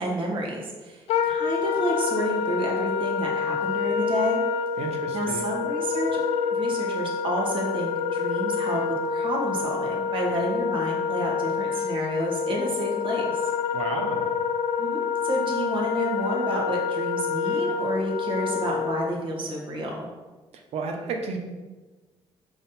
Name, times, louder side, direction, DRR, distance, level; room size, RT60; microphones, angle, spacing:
voice 1, 0.0-4.4 5.1-6.2 6.5-8.8 9.1-13.5 14.8-20.1, right 1 dB, 55° right, -2 dB, 1.7 m, -30 dB
Wind instrument woodwind instrument, 1.1-19.2, left 6 dB, 80° left, 0.5 m, -27 dB
voice 2, 4.8-5.5 13.7-14.3 20.7-21.4, right 4 dB, 75° right, 3 dB, 1.0 m, -32 dB
5.0 x 4.0 x 5.7 m, 1.3 s
cardioid pair, 115°, 11 cm